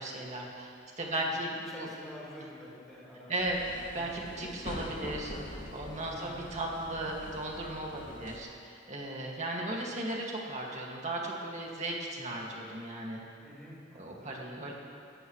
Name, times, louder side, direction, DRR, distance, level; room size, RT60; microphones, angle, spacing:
voice 1, 0.0-1.9 3.3-13.2 13.9-14.7, right 1 dB, 35° right, -2 dB, 2.1 m, -36 dB
voice 2, 1.1-3.5 6.0-6.4 13.4-14.3, left 1 dB, ahead, -8 dB, 4.2 m, -48 dB
sound 1, 3.4-8.4, left 1 dB, 40° left, 2.2 m, -44 dB
18.5 x 15.0 x 3.2 m, 2.5 s
head